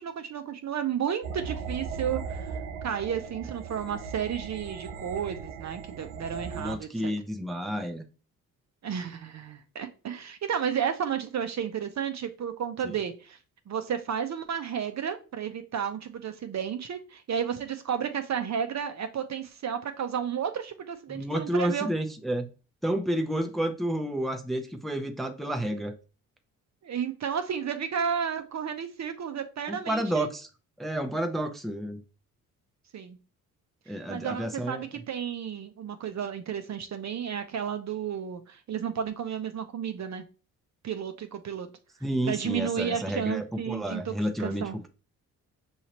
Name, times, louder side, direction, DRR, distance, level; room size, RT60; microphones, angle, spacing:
voice 1, 0.0-2.6 2.8-7.1 8.8-13.4 13.7-21.9 26.8-30.3 32.9-33.2 34.1-40.2 40.8-41.7 42.3-44.8, right 8 dB, 40° right, 0.7 m, -32 dB
sound 1, 1.2-6.7, right 6 dB, 85° right, 0.6 m, -38 dB
voice 2, 6.5-8.0 12.8-12.9 21.1-22.5 22.8-26.0 29.7-30.5 30.8-32.0 33.9-34.9 42.0-44.9, right 1 dB, ahead, 0.7 m, -30 dB
6.3 x 2.9 x 2.9 m
hypercardioid pair, 45°, 42 cm